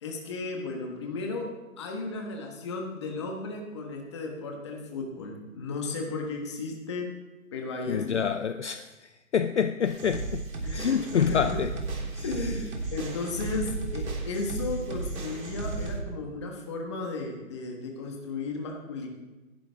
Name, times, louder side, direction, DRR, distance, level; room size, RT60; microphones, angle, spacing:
voice 1, 0.0-1.5 1.8-7.1 7.5-8.3 10.6-10.9 11.1-11.6 12.2-19.1, left 3 dB, 20° left, 1 dB, 1.4 m, -34 dB
voice 2, 7.9-10.4 10.7-11.7 12.1-12.5, left 7 dB, 55° left, 10 dB, 0.6 m, -27 dB
sound 1, 9.8-16.0, right 3 dB, 80° right, 3.7 m, -34 dB
17.5 x 11.0 x 3.5 m, 1.1 s
hypercardioid pair, 175°, 42 cm